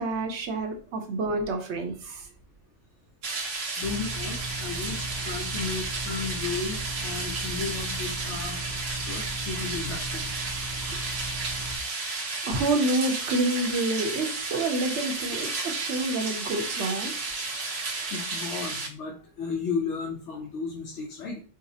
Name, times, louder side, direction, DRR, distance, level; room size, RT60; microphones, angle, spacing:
voice 1, 0.0-2.3 10.9-11.0 12.4-17.1, right 2 dB, 70° right, 3 dB, 1.0 m, -28 dB
sound 1, 3.2-18.9, right 3 dB, 85° right, 1.3 m, -33 dB
voice 2, 3.8-8.6 8.9-10.3 17.3-17.4 18.1-21.4, left 5 dB, 75° left, 1 dB, 0.9 m, -34 dB
sound 2, 3.8-11.8, right 2 dB, 40° right, 0.7 m, -37 dB
4.7 x 2.0 x 2.7 m, 0.40 s
omnidirectional pair, 1.3 m